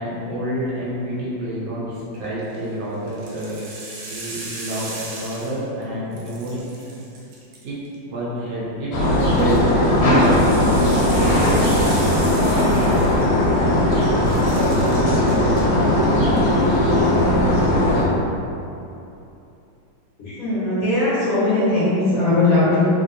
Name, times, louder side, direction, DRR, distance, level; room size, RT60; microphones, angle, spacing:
voice 1, 0.0-3.6 4.1-6.7 7.6-9.7, right 1 dB, 70° right, -8 dB, 1.1 m, -28 dB
sound 1, 2.2-2.6 3.1-5.8 6.1-8.0 9.1-13.6 13.9-15.6 16.0-16.4, right 2 dB, 85° right, 1.4 m, -37 dB
sound 2, 8.9-18.0, left 1 dB, 90° left, 1.5 m, -17 dB
voice 2, 20.2-22.9, left 2 dB, 60° left, -11 dB, 1.1 m, -19 dB
3.2 x 2.7 x 2.5 m, 2.8 s
omnidirectional pair, 2.1 m